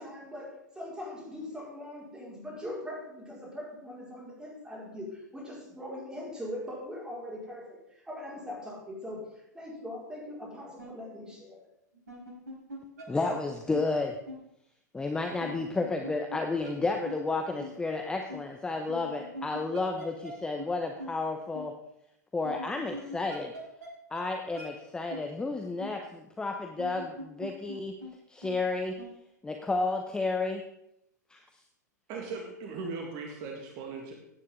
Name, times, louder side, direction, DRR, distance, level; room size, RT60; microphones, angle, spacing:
voice 1, 0.0-7.8 8.1-11.6, left 1 dB, 10° right, -4 dB, 5.1 m, -41 dB
sound 1, 10.8-10.9 11.9-13.0 13.3-13.4 13.7-13.8 14.3-14.4 15.4-16.4 16.6-16.7 17.0-17.2 17.6-17.7 18.3-18.4 18.9-20.3 20.6-20.7 21.0-21.1 21.5-21.6 22.4-23.9 24.1-24.2 24.5-24.7 25.1-25.2 25.8-25.9 26.6-27.8 28.0-28.1 28.4-28.5 29.0-29.1, equal, 65° right, 4.7 m, -41 dB
voice 2, 13.1-14.1 14.9-21.7 22.3-23.5 24.1-27.9 28.3-28.9 29.4-30.6 31.3-31.4, left 3 dB, 10° left, 4 dB, 1.0 m, -31 dB
voice 3, 32.1-34.1, right 4 dB, 40° right, 2 dB, 2.1 m, -38 dB
16.0 x 9.7 x 3.8 m, 0.79 s
figure-of-eight pair, 95°, 10 cm